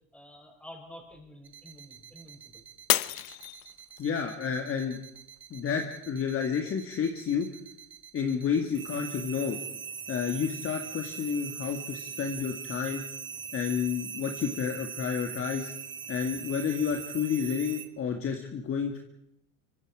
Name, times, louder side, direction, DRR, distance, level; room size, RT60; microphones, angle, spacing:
voice 1, 0.1-2.6, equal, 5° left, 1 dB, 6.3 m, -49 dB
sound 1, 1.4-17.9, right 7 dB, 25° right, 1.8 m, -41 dB
Shatter, 2.9-4.2 4.7-5.2 5.7-5.8, left 19 dB, 75° left, 1.0 m, -29 dB
voice 2, 4.0-5.0 5.5-7.5 8.1-9.6 10.1-13.0 13.5-15.7 16.1-19.0, left 6 dB, 30° left, 4 dB, 2.1 m, -30 dB
24.5 x 24.5 x 4.9 m, 0.76 s
supercardioid pair, 125°, 42 cm